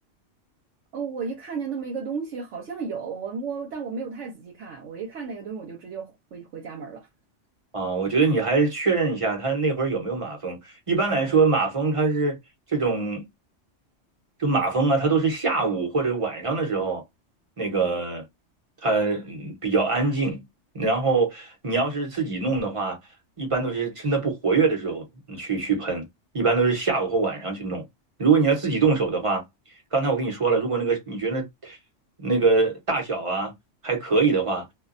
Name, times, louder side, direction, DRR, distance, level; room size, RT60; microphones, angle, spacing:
voice 1, 0.9-7.1, right 5 dB, 75° right, 1.0 m, -33 dB
voice 2, 7.7-12.4 12.7-13.2 14.4-17.0 17.6-18.2 18.8-20.4 20.7-23.0 23.4-26.1 26.3-27.8 28.2-29.4 29.9-31.8 32.2-33.5 33.8-34.7, right 4 dB, 30° right, 0.8 m, -23 dB
2.4 x 2.2 x 2.4 m
omnidirectional pair, 1.3 m